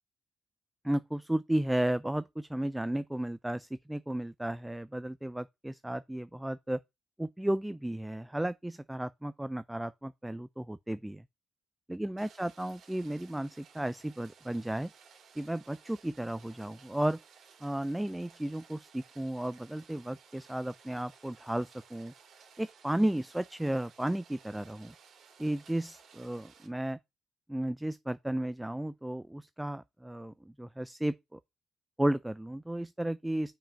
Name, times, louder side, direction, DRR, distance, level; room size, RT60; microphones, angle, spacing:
voice 1, 0.8-6.8 7.2-11.2 11.9-14.9 15.4-17.2 17.6-22.1 22.6-24.9 25.4-27.0 27.5-31.4 32.0-33.5, right 1 dB, 5° right, 0.4 m, -34 dB
Rain, 12.2-26.7, right 6 dB, 65° right, 2.6 m, -58 dB
6.0 x 4.8 x 5.6 m
cardioid pair, 90°, 0 cm